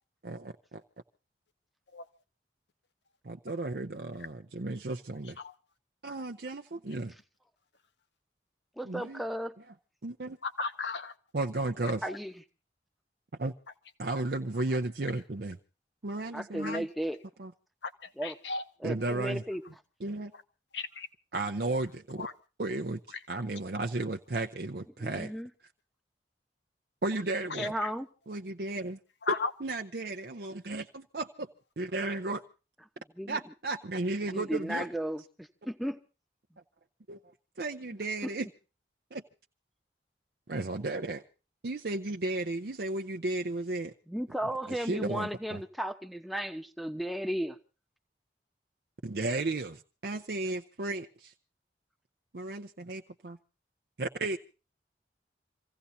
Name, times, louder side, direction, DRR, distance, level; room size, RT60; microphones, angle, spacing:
voice 1, 0.2-0.8 3.2-5.4 6.0-7.1 8.9-9.2 10.0-10.4 11.3-12.0 13.4-13.5 14.0-15.6 16.0-16.9 17.4-17.5 18.8-19.4 20.0-20.3 21.3-22.3 22.6-23.0 23.3-25.3 27.0-27.7 28.3-29.0 29.6-31.5 31.8-32.4 33.3-34.9 37.1-37.2 37.6-38.5 39.1-39.2 40.5-41.2 41.6-43.9 44.7-45.6 49.0-51.1 52.3-53.4 54.0-54.4, right 2 dB, 60° right, 3 dB, 0.7 m, -34 dB
voice 2, 8.8-9.6 12.0-12.3 16.3-17.2 18.2-18.3 18.8-19.6 25.0-25.5 27.6-28.1 33.2-33.4 34.3-36.0 38.2-38.3 44.1-47.6, equal, ahead, 6 dB, 0.9 m, -34 dB
voice 3, 10.4-11.1 11.8-12.2 16.6-16.8 17.8-18.6 20.7-21.1 22.2-22.3 23.1-23.2 27.5-27.9 29.2-29.5, left 4 dB, 75° left, 8 dB, 1.3 m, -35 dB
27.5 x 16.0 x 2.7 m, 0.34 s
head